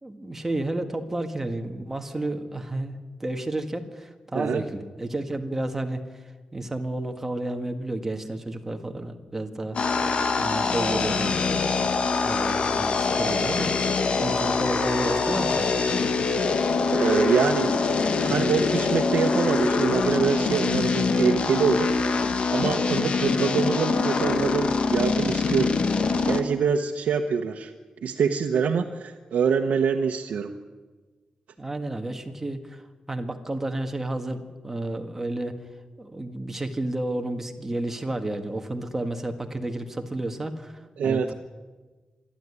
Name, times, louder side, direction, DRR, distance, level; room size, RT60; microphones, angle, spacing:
voice 1, 0.0-6.0 6.5-10.1 10.4-11.6 12.2-13.7 14.2-15.7 31.6-32.8 33.1-35.6 36.0-41.3, right 2 dB, 15° right, 5 dB, 1.7 m, -31 dB
sound 1, 9.7-26.4, left 4 dB, 50° left, 1.4 m, -24 dB
voice 2, 16.9-17.9 18.2-21.9 22.5-25.7 26.2-27.7 28.0-30.5 41.0-41.3, right 6 dB, 80° right, 2 dB, 1.1 m, -25 dB
26.5 x 11.5 x 9.8 m, 1.3 s
wide cardioid pair, 160°, 2 cm